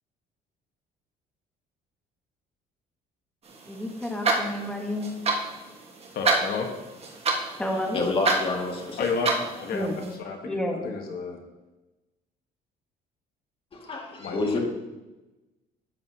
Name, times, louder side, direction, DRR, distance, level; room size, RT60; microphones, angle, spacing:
sound 1, 3.5-10.2, right 3 dB, 35° right, 1.6 m, -30 dB
voice 1, 3.7-5.1 7.6-8.0 9.7-10.1 10.4-10.9, left 1 dB, 5° left, 1 dB, 1.3 m, -30 dB
voice 2, 6.1-6.7 9.0-11.4 14.2-14.5, left 5 dB, 65° left, 3 dB, 1.4 m, -32 dB
voice 3, 7.9-9.1 13.7-14.6, left 3 dB, 35° left, 0 dB, 2.1 m, -28 dB
12.0 x 9.0 x 2.9 m, 1.1 s
cardioid pair, 110°, 17 cm